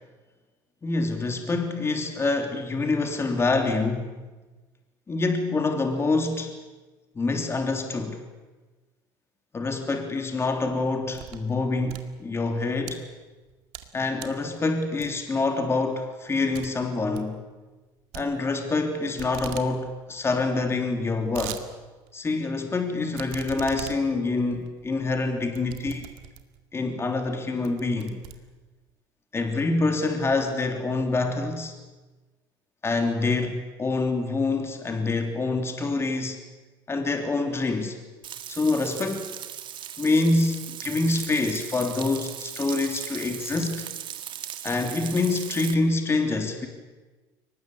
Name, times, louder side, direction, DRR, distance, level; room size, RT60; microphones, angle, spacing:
voice 1, 0.8-4.2 5.1-6.6 7.1-8.3 9.5-13.1 13.9-17.4 18.1-21.6 22.1-26.1 26.7-28.2 29.3-31.7 32.8-36.4 36.9-38.0 38.5-39.3 40.0-43.8 44.6-46.7, left 3 dB, 25° left, 5 dB, 3.3 m, -26 dB
sound 1, 10.5-11.5 11.8-12.9 13.4-13.9 14.2-14.5 15.0-15.4 15.8-15.9 16.2-16.3 16.5-16.7 17.0-17.3 18.1-18.9 19.2-19.7 20.0-20.1 20.3-20.4 20.9-21.6 22.1-22.2 23.1-26.6 27.2-27.3 27.6-28.9, right 15 dB, 85° right, 2.1 m, -41 dB
Frying (food), 38.2-45.7, right 10 dB, 55° right, 1.8 m, -38 dB
23.5 x 20.0 x 8.6 m, 1.2 s
supercardioid pair, 100°, 10 cm